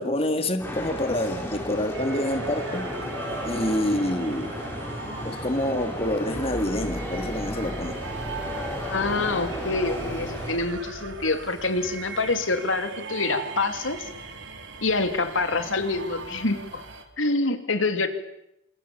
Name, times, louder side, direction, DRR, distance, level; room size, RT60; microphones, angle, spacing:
voice 1, 0.0-2.9 3.4-4.6 5.2-8.0, left 1 dB, 30° left, 2.3 m, -27 dB
sound 1, 0.6-10.6, equal, 10° left, 6.5 m, -34 dB
sound 2, 1.9-17.0, right 3 dB, 65° right, 4.0 m, -39 dB
sound 3, 6.3-11.5, equal, 90° right, 6.1 m, -41 dB
voice 2, 8.9-14.1 14.8-16.8 17.2-18.1, left 3 dB, 80° left, 2.8 m, -26 dB
28.5 x 27.0 x 7.1 m
head